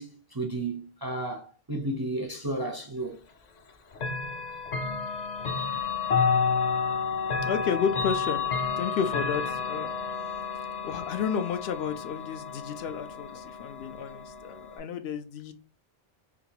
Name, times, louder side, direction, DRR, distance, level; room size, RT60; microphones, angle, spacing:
voice 1, 0.0-3.2, right 2 dB, 30° right, 0.4 m, -33 dB
Chime / Clock, 4.0-14.8, left 5 dB, 50° left, 0.5 m, -30 dB
voice 2, 7.5-8.4 8.8-9.9 10.8-15.5, left 7 dB, 80° left, 0.8 m, -31 dB
3.7 x 2.4 x 2.7 m
omnidirectional pair, 1.1 m